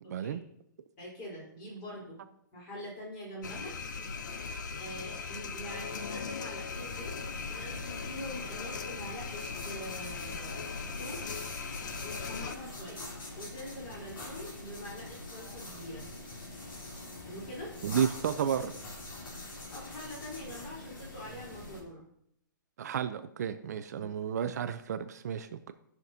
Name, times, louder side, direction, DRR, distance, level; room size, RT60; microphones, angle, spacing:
voice 1, 0.0-0.4 17.8-18.7 22.8-25.7, right 8 dB, 55° right, 10 dB, 0.5 m, -32 dB
voice 2, 1.0-2.3 2.5-3.7 4.7-7.1 7.5-11.2 12.0-13.1 13.3-16.0 17.2-17.7 19.7-22.1 23.9-24.1, equal, 30° left, -4 dB, 3.5 m, -44 dB
sound 1, 3.4-12.6, left 5 dB, 65° left, 0.7 m, -39 dB
sound 2, 6.7-21.8, left 2 dB, 80° left, 3.1 m, -44 dB
15.0 x 5.9 x 2.7 m, 0.72 s
hypercardioid pair, 165°, 11 cm